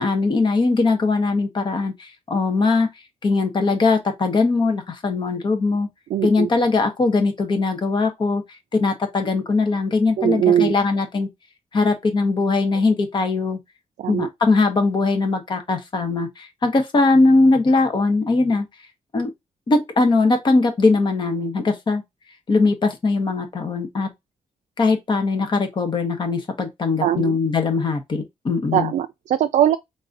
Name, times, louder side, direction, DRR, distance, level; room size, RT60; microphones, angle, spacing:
voice 1, 0.0-2.9 3.2-5.9 6.2-8.4 8.7-11.3 11.7-13.6 14.1-18.7 19.1-19.3 19.7-22.0 22.5-24.1 24.8-28.9, left 3 dB, 40° left, 1.1 m, -20 dB
voice 2, 6.1-6.5 10.2-10.7 14.0-14.3 27.0-27.4 28.7-29.8, right 10 dB, 85° right, 0.4 m, -20 dB
3.8 x 2.7 x 3.9 m
wide cardioid pair, 165°, 12 cm